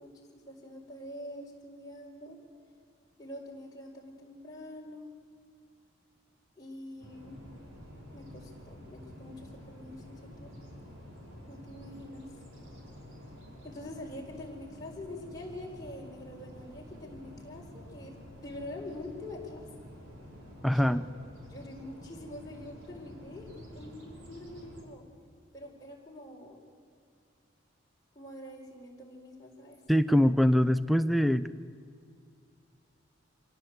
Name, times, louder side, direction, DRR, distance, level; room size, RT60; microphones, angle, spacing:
voice 1, 0.0-2.4 3.2-5.1 6.6-7.4 8.1-10.5 11.5-12.3 13.6-19.6 20.7-21.0 21.5-25.0 25.5-26.6 28.1-29.8, left 1 dB, 20° left, -2 dB, 4.5 m, -45 dB
sound 1, 7.0-24.8, equal, 80° right, 4.9 m, -49 dB
voice 2, 20.6-21.0 29.9-31.4, equal, ahead, 13 dB, 0.5 m, -23 dB
26.0 x 17.5 x 8.1 m, 2.3 s
head